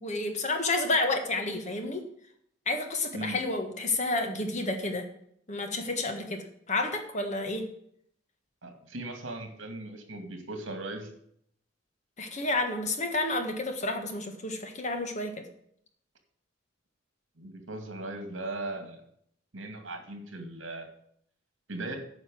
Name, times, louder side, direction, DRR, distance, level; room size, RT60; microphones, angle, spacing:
voice 1, 0.0-2.0 2.7-5.1 5.5-6.4 6.7-7.6 12.2-15.3, left 2 dB, 35° left, 5 dB, 1.5 m, -30 dB
voice 2, 3.1-3.4 8.6-11.1 17.4-19.0 19.5-20.9 21.7-22.0, right 2 dB, 75° right, 5 dB, 2.2 m, -38 dB
9.6 x 5.7 x 7.7 m, 0.67 s
head